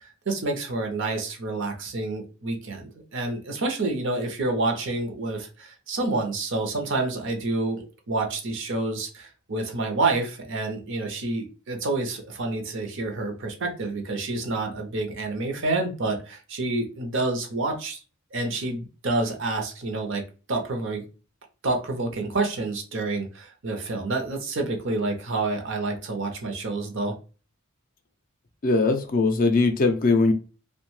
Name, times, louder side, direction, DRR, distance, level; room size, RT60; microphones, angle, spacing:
voice 1, 0.3-18.0 18.3-20.2 20.5-21.1 21.6-27.2, right 2 dB, 55° right, 0.6 m, -28 dB
voice 2, 28.6-30.3, left 3 dB, 40° left, 0.4 m, -20 dB
2.7 x 2.1 x 3.0 m
head